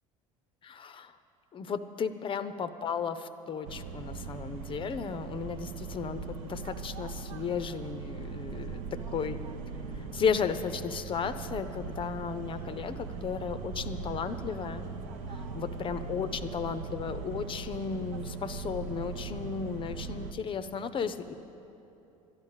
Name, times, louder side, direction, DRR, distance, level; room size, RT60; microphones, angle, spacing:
voice 1, 0.6-1.2 1.5-9.4 10.1-14.9 15.3-21.3, left 6 dB, 30° left, 11 dB, 0.6 m, -34 dB
sound 1, 3.6-20.3, right 5 dB, 65° right, 0.8 m, -40 dB
12.5 x 10.5 x 7.2 m, 2.9 s
figure-of-eight pair, 70°, 18 cm